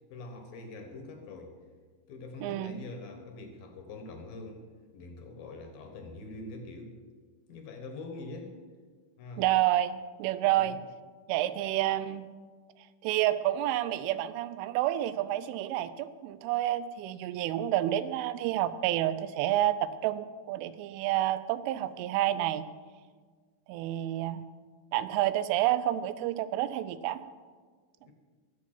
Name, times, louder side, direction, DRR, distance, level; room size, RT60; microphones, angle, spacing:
voice 1, 0.1-1.6 2.1-4.6 4.9-7.0 7.5-8.6 9.2-9.4 10.4-10.8 28.0-28.1, left 2 dB, 60° left, 4 dB, 2.7 m, -44 dB
voice 2, 2.4-2.8 9.4-10.8 11.3-12.3 13.0-22.7 23.7-24.5 24.9-27.2, right 13 dB, 90° right, 14 dB, 3.2 m, -29 dB
21.0 x 7.5 x 5.9 m, 1.5 s
omnidirectional pair, 5.5 m